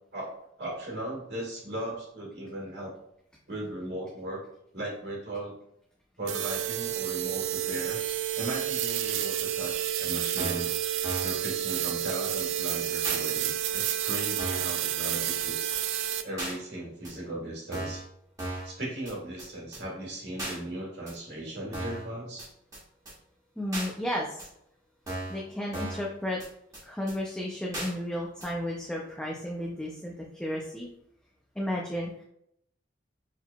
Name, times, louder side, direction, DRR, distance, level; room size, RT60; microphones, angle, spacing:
voice 1, 0.1-2.9 3.5-4.4 4.7-5.5 6.2-10.7 11.2-15.7 16.2-18.0 18.6-22.5, right 1 dB, 55° right, -2 dB, 1.6 m, -37 dB
sound 1, 6.3-16.2, right 12 dB, 75° right, 0.3 m, -30 dB
sound 2, 9.7-9.8 10.4-10.7 11.0-11.4 11.7-11.8 12.0-12.1 12.4-12.5 13.0-13.2 13.7-13.8 14.4-14.7 15.0-15.1 15.4-15.5 15.7-15.8 16.4-16.5 17.0-17.1 17.7-18.0 18.4-18.7 19.0-19.1 19.4-19.5 19.7-19.8 20.4-20.6 21.1-21.2 21.7-22.0 22.4-22.5 22.7-22.8 23.1-23.2 23.7-23.9 24.4-24.5 25.1-25.4 25.7-26.1 26.4-26.5 26.7-26.8 27.1-27.2 27.7-27.9 28.4-28.5, right 1 dB, 20° right, 1.5 m, -36 dB
voice 2, 23.6-24.5 25.3-26.4 26.8-30.9 31.6-32.2, left 1 dB, 5° left, -2 dB, 0.4 m, -33 dB
4.5 x 3.9 x 2.3 m, 0.75 s
head